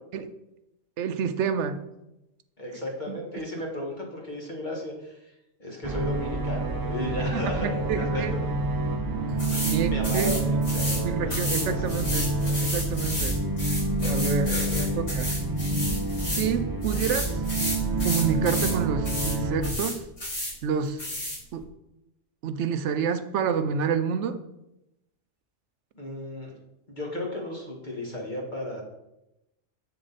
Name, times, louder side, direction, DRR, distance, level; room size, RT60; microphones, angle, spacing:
voice 1, 1.0-1.8 3.1-3.2 7.3-8.3 9.6-10.4 11.0-12.3 12.6-13.4 14.0-15.4 16.2-17.4 18.0-20.0 20.6-21.0 21.5-21.6 22.4-24.4, right 7 dB, 80° right, 11 dB, 0.9 m, -28 dB
voice 2, 2.6-5.3 5.6-8.6 9.5-11.2 11.5-11.9 14.5-15.1 26.0-26.5 26.9-28.8, left 1 dB, 40° left, -1 dB, 1.9 m, -35 dB
sound 1, 5.8-19.7, right 2 dB, 20° right, 0.8 m, -28 dB
sound 2, 9.4-9.8 10.0-11.0 11.3-16.5 16.8-18.8 19.0-19.4 19.6-20.5 21.0-21.4, left 1 dB, 85° left, 4.1 m, -32 dB
8.2 x 6.7 x 4.0 m, 0.90 s
omnidirectional pair, 1.2 m